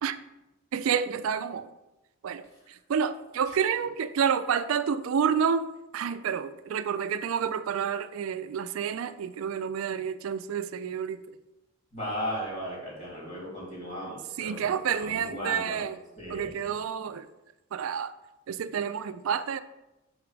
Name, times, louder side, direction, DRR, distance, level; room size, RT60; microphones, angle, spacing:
voice 1, 0.7-1.7 2.2-11.2 14.4-16.0 16.3-17.3 17.7-18.1 18.5-19.6, right 7 dB, 80° right, 13 dB, 0.4 m, -29 dB
voice 2, 11.9-15.8 16.2-16.5, equal, 35° left, -4 dB, 2.4 m, -36 dB
5.8 x 5.1 x 4.7 m, 0.97 s
head